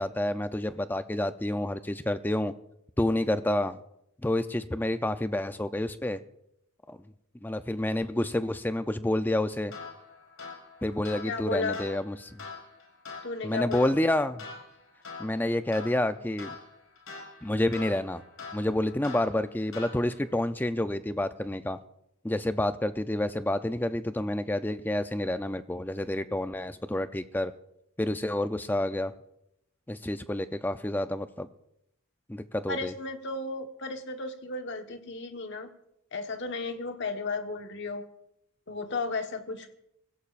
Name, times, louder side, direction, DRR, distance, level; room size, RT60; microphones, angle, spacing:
voice 1, 0.0-2.5 3.0-3.8 4.2-6.2 6.9-7.0 7.4-9.7 10.8-12.4 13.4-14.5 15.2-16.5 17.4-18.2 18.5-21.8 22.2-27.5 28.0-29.1 29.9-31.5 32.3-32.9, left 1 dB, 10° left, 10 dB, 0.5 m, -29 dB
sound 1, 9.7-20.3, left 4 dB, 80° left, 5.1 m, -45 dB
voice 2, 11.2-11.9 13.2-13.9 32.7-35.7 36.1-38.0 38.7-39.9, left 3 dB, 55° left, 5 dB, 1.3 m, -34 dB
25.0 x 16.0 x 2.5 m, 0.79 s
head